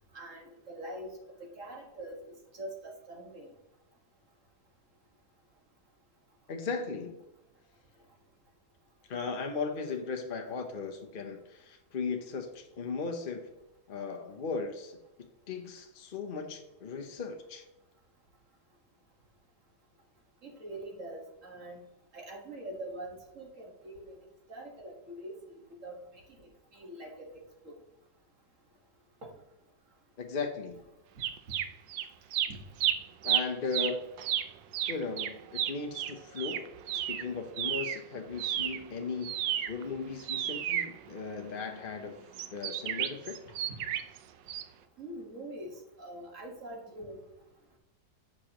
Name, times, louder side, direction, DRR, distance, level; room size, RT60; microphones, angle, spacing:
voice 1, 0.1-1.1 1.4-3.5 20.4-21.9 22.1-24.2 24.5-25.4 25.7-27.7 29.2-29.3 32.5-32.6 45.0-45.7 46.0-47.2, right 1 dB, 45° right, 0 dB, 1.9 m, -44 dB
voice 2, 6.5-7.2 9.1-13.5 13.9-15.0 15.5-17.6 30.2-30.8 33.2-34.1 34.9-42.2 42.5-43.4, left 4 dB, 45° left, 4 dB, 0.8 m, -37 dB
sound 1, 31.2-32.1 32.3-38.0 38.3-41.6 42.3-44.2 44.5-44.6, right 11 dB, 85° right, 1.3 m, -32 dB
11.5 x 7.5 x 3.0 m, 0.91 s
omnidirectional pair, 1.9 m